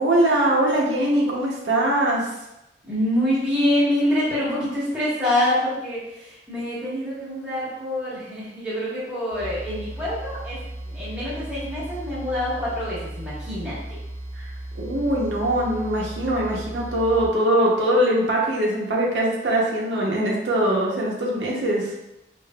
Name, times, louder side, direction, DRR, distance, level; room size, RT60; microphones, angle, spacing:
voice 1, 0.0-2.3 14.3-21.9, right 1 dB, 85° right, -3 dB, 0.8 m, -22 dB
voice 2, 2.8-10.6 10.8-14.0, left 1 dB, 5° right, -10 dB, 1.3 m, -26 dB
sound 1, 9.3-17.3, right 1 dB, 15° left, 0.3 m, -36 dB
4.9 x 2.6 x 2.3 m, 0.90 s
head